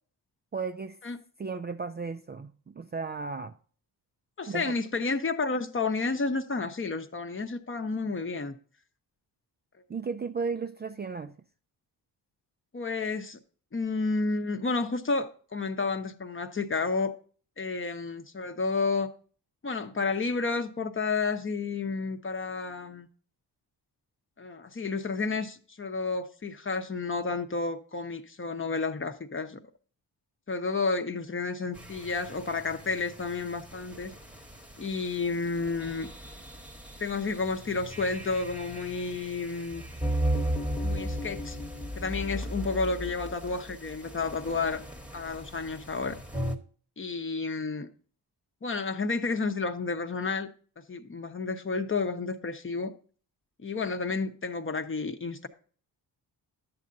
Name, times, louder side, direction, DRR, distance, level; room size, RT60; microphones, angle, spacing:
voice 1, 0.5-1.0 1.4-3.6 4.5-4.8 9.9-11.3, right 5 dB, 25° right, 0.4 m, -34 dB
voice 2, 4.4-8.6 12.7-13.4 13.7-17.1 17.6-19.1 19.6-23.1 24.4-29.6 30.5-34.1 34.8-36.1 37.0-39.8 40.8-41.6 42.0-44.8 45.1-46.2 47.0-47.9 48.6-50.5 50.8-52.9 53.6-55.5, left 4 dB, 30° left, 0.8 m, -31 dB
sound 1, 31.7-46.6, equal, 5° right, 1.1 m, -36 dB
10.5 x 7.5 x 2.6 m
cardioid pair, 90°, 41 cm